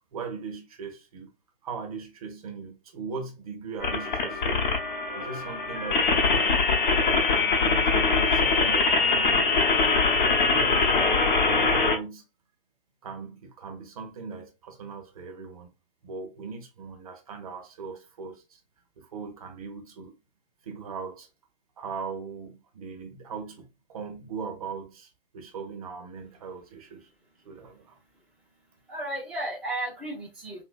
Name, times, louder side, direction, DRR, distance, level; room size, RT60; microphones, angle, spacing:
voice 1, 0.1-1.3 1.6-4.8 5.1-6.6 7.0-9.8 10.2-10.9 11.5-12.2 13.0-15.7 16.0-18.6 19.0-20.1 20.6-21.3 21.8-27.1 27.4-28.0, right 5 dB, 40° right, 0.8 m, -39 dB
sound 1, 3.8-12.0, left 4 dB, 55° left, 0.8 m, -23 dB
voice 2, 28.1-30.6, right 1 dB, 5° right, 0.5 m, -35 dB
2.9 x 2.7 x 2.4 m
figure-of-eight pair, 130°, 29 cm